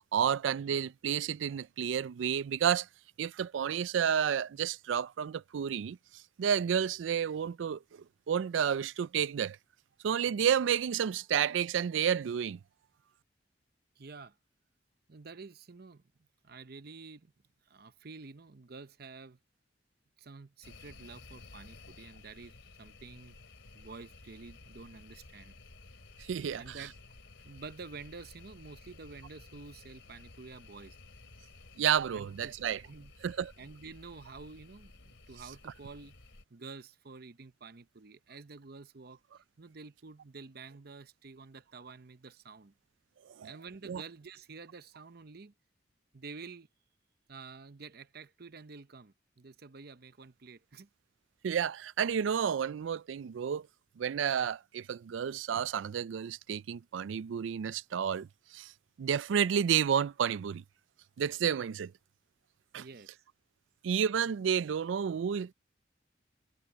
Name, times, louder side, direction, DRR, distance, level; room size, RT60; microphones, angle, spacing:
voice 1, 0.1-2.9 3.2-6.0 6.4-9.6 10.0-12.6 26.2-26.8 31.8-32.8 33.2-33.5 43.4-43.5 43.9-44.0 51.4-53.7 54.0-58.3 58.5-58.7 59.0-60.6 61.2-61.9 62.7-62.8 63.8-65.5, right 8 dB, 90° right, 0.4 m, -31 dB
voice 2, 14.0-14.4 15.1-16.0 16.4-17.3 17.6-19.4 20.2-23.4 23.7-25.6 26.5-27.0 27.4-31.0 32.1-32.6 32.8-33.1 33.6-36.2 36.5-39.2 39.6-42.7 43.4-45.5 46.1-46.7 47.3-50.9 62.8-63.2, right 4 dB, 55° right, 0.8 m, -49 dB
sound 1, 20.6-36.4, left 3 dB, 80° left, 2.6 m, -54 dB
head